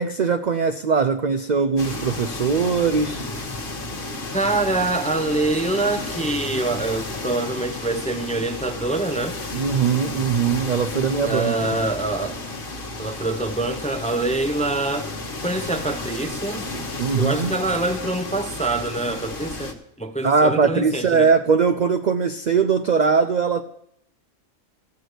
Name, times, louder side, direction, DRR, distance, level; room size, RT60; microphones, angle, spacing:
voice 1, 0.0-3.2 9.5-11.6 17.0-17.6 20.2-23.6, right 5 dB, 60° right, 0.4 m, -20 dB
sound 1, 1.8-19.7, left 2 dB, 40° left, 1.3 m, -32 dB
voice 2, 4.3-9.4 11.2-12.4 13.0-15.1 15.4-16.7 17.2-21.3, right 2 dB, 10° left, 0.5 m, -25 dB
14.5 x 6.3 x 8.0 m
omnidirectional pair, 1.4 m